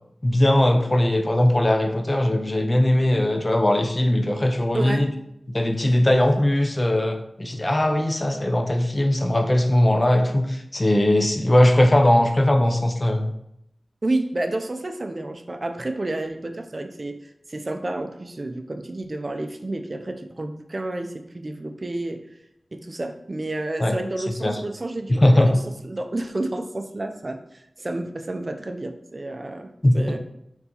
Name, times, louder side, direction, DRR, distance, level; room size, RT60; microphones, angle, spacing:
voice 1, 0.2-5.1 5.5-13.3 23.8-24.6 25.1-25.5 29.8-30.2, left 1 dB, 30° left, 4 dB, 0.6 m, -20 dB
voice 2, 4.7-5.1 14.0-17.2 17.5-22.2 22.7-30.2, right 2 dB, 45° right, 6 dB, 0.4 m, -30 dB
4.4 x 3.9 x 2.9 m, 0.79 s
wide cardioid pair, 50°, 0 cm